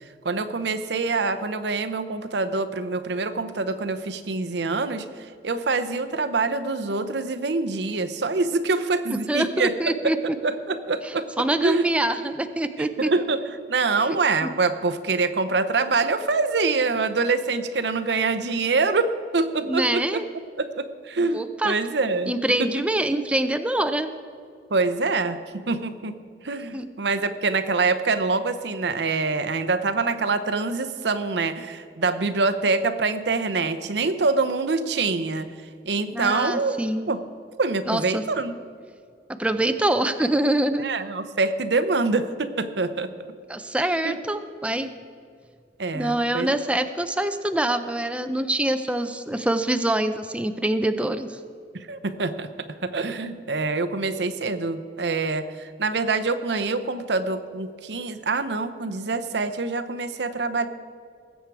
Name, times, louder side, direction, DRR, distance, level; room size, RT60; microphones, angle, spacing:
voice 1, 0.2-5.0 5.4-9.7 10.0-10.1 10.4-11.9 13.0-13.4 13.7-20.0 20.6-22.3 22.6-22.7 24.7-25.4 25.7-26.1 26.4-35.5 35.8-36.8 37.1-37.2 37.6-38.5 40.8-43.1 44.0-44.2 45.8-46.5 51.7-52.5 52.8-60.7, right 3 dB, 75° right, 11 dB, 0.8 m, -25 dB
voice 2, 9.1-10.4 11.0-13.1 14.1-14.5 19.6-20.2 21.3-21.8 22.3-24.1 26.7-26.9 36.1-37.1 37.9-38.2 39.4-40.9 43.5-45.0 45.9-51.4, right 1 dB, 5° right, 9 dB, 0.5 m, -25 dB
19.5 x 8.2 x 4.7 m, 2.2 s
head